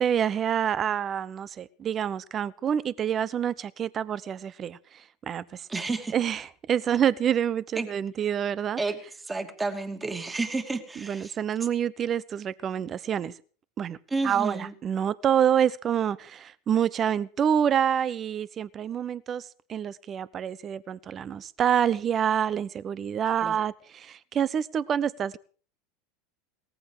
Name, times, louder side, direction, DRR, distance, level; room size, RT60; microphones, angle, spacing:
voice 1, 0.0-4.8 5.3-5.7 6.1-8.8 11.0-13.3 13.8-14.0 14.2-25.4, right 9 dB, 35° right, 0.9 m, -27 dB
voice 2, 5.7-6.1 7.8-7.9 8.8-11.4 14.1-14.7 23.3-23.6, right 3 dB, 15° right, 2.7 m, -31 dB
18.0 x 14.5 x 4.9 m
hypercardioid pair, 90°, 0 cm